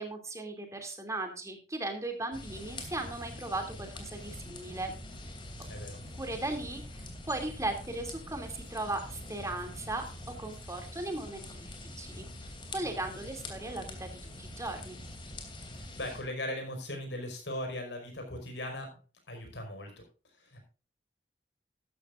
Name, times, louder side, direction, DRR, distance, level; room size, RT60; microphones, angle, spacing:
voice 1, 0.0-4.9 6.2-6.8 7.3-10.0 10.4-12.3 12.7-14.1 14.4-15.0, right 2 dB, 20° right, 5 dB, 2.7 m, -37 dB
sound 1, 2.3-16.2, left 1 dB, 30° left, 2.9 m, -45 dB
sound 2, 2.5-10.6, right 1 dB, 70° right, 2.7 m, -55 dB
voice 2, 5.7-6.0 15.7-18.9 19.3-19.9 20.4-20.6, left 1 dB, 80° left, 4 dB, 5.1 m, -38 dB
14.0 x 12.0 x 2.5 m, 0.35 s
head